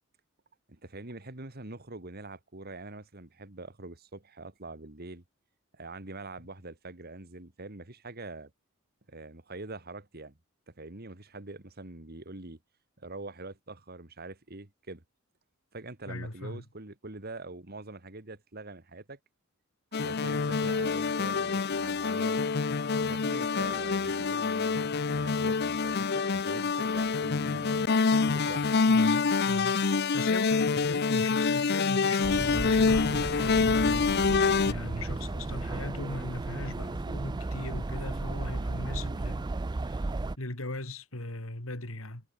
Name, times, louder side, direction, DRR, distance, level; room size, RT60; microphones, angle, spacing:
voice 1, 0.7-5.2 5.7-8.5 9.1-10.4 10.7-12.6 13.0-15.0 15.7-19.2 20.0-22.4 23.0-27.9 28.2-28.8, right 2 dB, 50° right, 2.3 m, -44 dB
voice 2, 16.1-16.6 28.8-34.1 34.6-39.5 39.9-40.1 40.4-42.2, left 2 dB, 90° left, 3.8 m, -39 dB
sound 1, 19.9-34.7, left 4 dB, 50° left, 0.7 m, -26 dB
sound 2, 32.2-40.4, right 2 dB, 20° right, 0.4 m, -34 dB
head